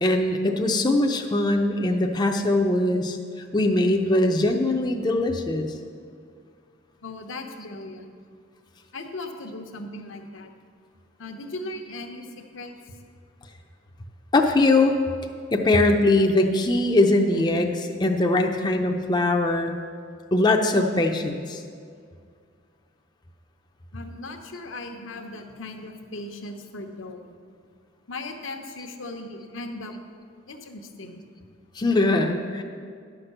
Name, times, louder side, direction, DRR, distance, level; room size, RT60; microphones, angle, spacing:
voice 1, 0.0-3.2 3.5-5.7 14.3-15.0 15.5-17.7 18.0-19.7 20.3-21.6 31.7-32.6, left 2 dB, 20° left, 3 dB, 0.5 m, -21 dB
voice 2, 7.0-8.0 8.9-10.5 11.2-13.0 20.4-20.5 23.9-27.3 28.1-29.9 30.5-31.2, left 2 dB, 75° left, 4 dB, 0.9 m, -38 dB
11.0 x 5.9 x 6.6 m, 2.2 s
head